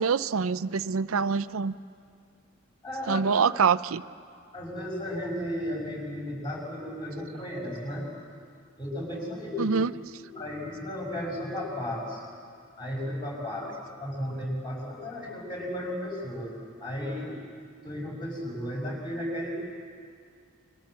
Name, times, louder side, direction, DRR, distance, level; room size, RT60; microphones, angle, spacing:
voice 1, 0.0-1.7 3.1-4.0 9.6-9.9, right 5 dB, 85° right, 13 dB, 0.6 m, -25 dB
voice 2, 2.8-3.2 4.5-8.1 8.8-9.7 10.2-12.2 12.8-16.5 16.8-17.4 17.8-19.5, left 1 dB, 20° left, -2 dB, 6.1 m, -34 dB
29.0 x 23.0 x 7.6 m, 2.2 s
head